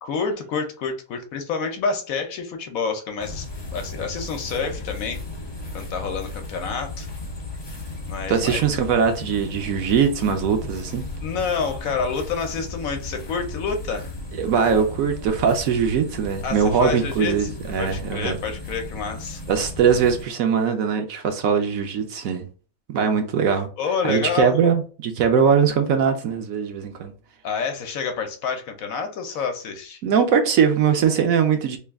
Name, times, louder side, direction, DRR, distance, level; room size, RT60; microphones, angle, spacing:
voice 1, 0.0-5.2 5.7-7.1 8.1-8.6 11.2-14.1 16.4-19.4 23.8-24.6 27.4-30.0, left 5 dB, 65° left, 1.0 m, -28 dB
sound 1, 3.2-20.2, left 2 dB, 35° left, 0.4 m, -35 dB
voice 2, 8.3-11.1 14.4-18.4 19.5-22.5 22.9-23.7 24.1-27.1 30.0-31.8, right 7 dB, 70° right, 1.0 m, -21 dB
3.3 x 2.3 x 3.4 m
omnidirectional pair, 1.6 m